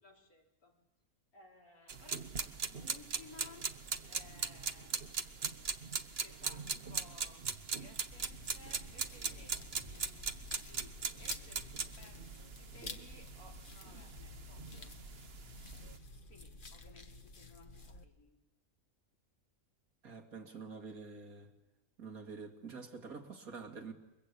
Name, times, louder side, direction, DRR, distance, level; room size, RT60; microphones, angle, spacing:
voice 1, 0.0-0.8 1.3-3.7 4.1-5.0 6.2-9.6 9.8-10.4 10.6-15.0 16.3-18.4, left 3 dB, 75° left, -2 dB, 5.2 m, -59 dB
sound 1, 1.9-16.0, right 5 dB, 45° right, 1.3 m, -40 dB
sound 2, 8.1-18.0, left 3 dB, 35° left, 1.5 m, -51 dB
voice 2, 20.0-21.5 22.0-23.9, right 4 dB, 75° right, 3 dB, 2.8 m, -47 dB
29.0 x 23.5 x 8.4 m, 1.0 s
omnidirectional pair, 1.5 m